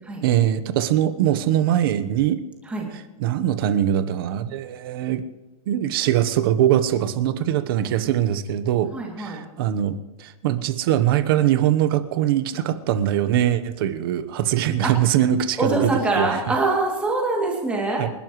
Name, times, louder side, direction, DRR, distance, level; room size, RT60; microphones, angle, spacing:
voice 1, 0.2-2.4 3.2-5.2 5.7-8.9 9.2-16.5 18.0-18.1, right 11 dB, 40° right, 12 dB, 1.1 m, -22 dB
voice 2, 8.9-9.4 14.8-14.9 15.6-18.0, right 2 dB, 5° right, -1 dB, 2.7 m, -24 dB
28.5 x 12.5 x 3.2 m, 1.1 s
supercardioid pair, 175°, 19 cm